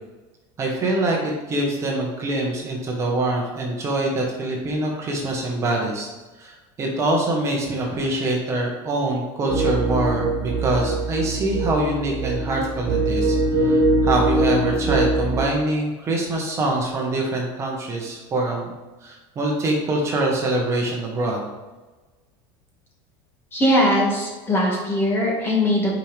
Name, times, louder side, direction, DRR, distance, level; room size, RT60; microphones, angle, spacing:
voice 1, 0.6-6.1 6.4-18.7 19.0-21.5, right 2 dB, 25° right, -1 dB, 1.4 m, -24 dB
sound 1, 9.5-15.5, right 2 dB, 40° right, 1.4 m, -22 dB
voice 2, 23.5-26.0, equal, 20° left, -3 dB, 2.1 m, -20 dB
8.8 x 5.2 x 3.5 m, 1.2 s
supercardioid pair, 155°, 12 cm